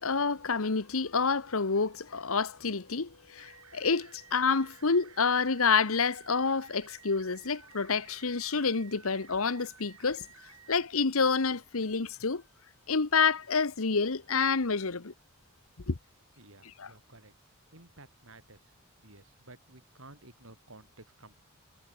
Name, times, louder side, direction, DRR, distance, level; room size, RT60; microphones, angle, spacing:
voice 1, 0.0-10.3 10.7-12.4 12.9-15.1 15.9-16.0 16.8-16.9, left 5 dB, 75° left, 1.2 m, -28 dB
sound 1, 3.4-10.9, right 7 dB, 90° right, 4.2 m, -55 dB
voice 2, 16.4-17.3 17.7-18.7 19.0-21.4, right 2 dB, 65° right, 5.8 m, -54 dB
head